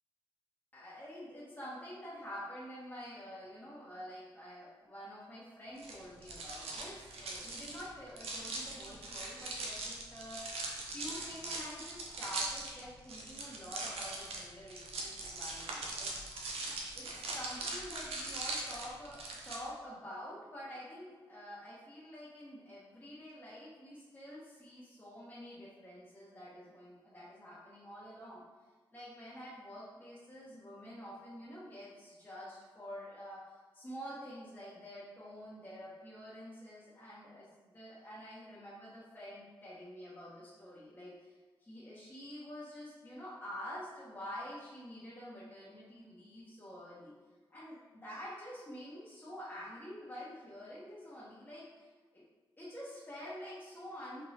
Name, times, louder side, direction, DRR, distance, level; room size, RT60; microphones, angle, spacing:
voice 1, 0.7-10.6 10.9-16.1 16.9-28.4 28.9-33.4 33.7-47.1 47.5-52.2 52.6-54.2, equal, 20° left, -9 dB, 1.0 m, -48 dB
sound 1, 5.8-19.6, right 2 dB, 90° right, 0.5 m, -41 dB
3.4 x 3.2 x 2.8 m, 1.3 s
cardioid pair, 50°, 10 cm